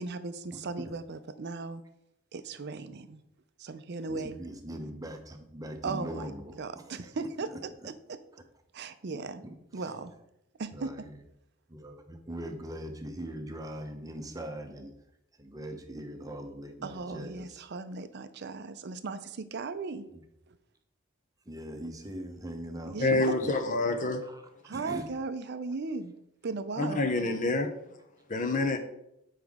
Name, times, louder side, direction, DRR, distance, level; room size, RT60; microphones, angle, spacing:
voice 1, 0.0-1.8 2.3-3.2 3.6-4.3 5.8-6.3 6.6-8.2 8.7-9.4 9.7-10.1 10.6-10.9 16.8-20.0 22.8-23.3 24.6-26.1 26.4-27.1, right 4 dB, 50° right, 11 dB, 0.5 m, -37 dB
voice 2, 0.5-0.9 4.1-6.6 6.9-7.6 9.4-9.9 10.7-11.2 11.7-14.9 15.4-17.5 20.1-20.2 21.5-23.0 23.7-23.8 24.2-24.4 24.7-25.1, right 1 dB, 15° right, 5 dB, 0.8 m, -41 dB
voice 3, 23.0-24.2 26.8-27.7 28.3-28.8, left 2 dB, 40° left, 6 dB, 0.7 m, -27 dB
7.9 x 5.0 x 3.6 m, 0.81 s
head